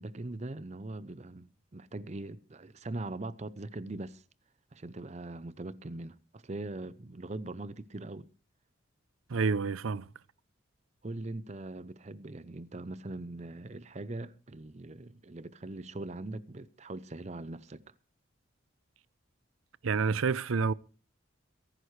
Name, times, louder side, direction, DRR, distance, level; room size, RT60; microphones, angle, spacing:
voice 1, 0.0-4.2 4.7-8.3 11.0-17.8, right 2 dB, 35° right, 0.6 m, -41 dB
voice 2, 9.3-10.1 19.8-20.7, right 5 dB, 85° right, 0.6 m, -28 dB
23.0 x 11.0 x 3.2 m
head